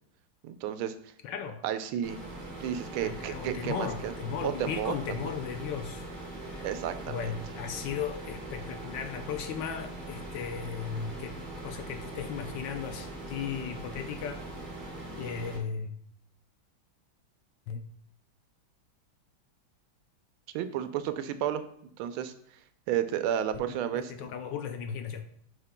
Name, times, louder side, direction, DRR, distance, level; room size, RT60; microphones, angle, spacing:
voice 1, 0.4-0.9 1.6-2.2 2.6-4.1 4.4-5.3 6.6-7.3 20.5-21.6 22.0-22.3 22.9-24.3, right 10 dB, 90° right, 10 dB, 1.4 m, -32 dB
voice 2, 1.2-1.6 3.0-6.1 6.4-6.7 7.1-11.4 11.6-14.5 15.1-15.9 17.7-17.8 23.5-25.2, left 7 dB, 75° left, 6 dB, 1.1 m, -36 dB
sound 1, 2.0-15.6, right 1 dB, 25° right, 1.4 m, -41 dB
9.5 x 5.5 x 2.2 m, 0.66 s
omnidirectional pair, 2.2 m